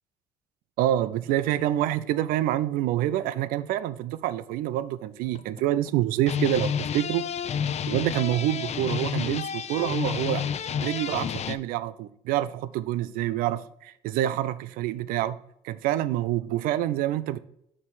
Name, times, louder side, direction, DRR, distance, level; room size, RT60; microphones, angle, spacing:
voice 1, 0.8-7.2 7.9-10.5 10.8-15.4 15.6-17.4, right 13 dB, 75° right, 16 dB, 0.4 m, -27 dB
sound 1, 4.5-4.6 5.2-5.9 6.2-11.6, left 8 dB, 50° left, 0.5 m, -30 dB
5.9 x 4.6 x 6.1 m, 0.74 s
supercardioid pair, 65°, 15 cm